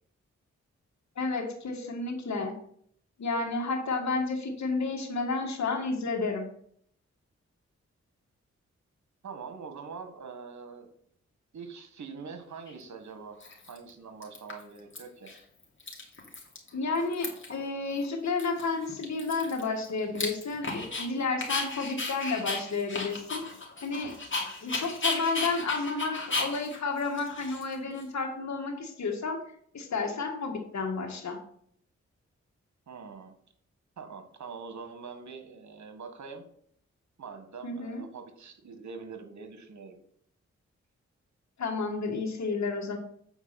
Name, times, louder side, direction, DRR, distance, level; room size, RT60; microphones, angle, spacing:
voice 1, 1.1-2.5 3.2-6.4 16.7-23.4 23.8-24.1 24.6-29.4 29.7-31.4 37.6-38.0 41.6-43.0, left 4 dB, 70° left, 1 dB, 1.8 m, -31 dB
voice 2, 9.2-10.9 11.5-13.4 13.7-15.3 32.9-33.3 34.0-36.4 37.2-40.0, right 5 dB, 75° right, 7 dB, 1.6 m, -44 dB
Dog, 12.7-12.8 13.4-13.9 14.2-15.0 15.3-15.4 15.6-16.7 17.0-17.6 18.0-18.1 18.4-21.1 21.4-28.0, left 3 dB, 45° left, 2.8 m, -35 dB
8.0 x 4.7 x 5.8 m, 0.64 s
cardioid pair, 45°, 29 cm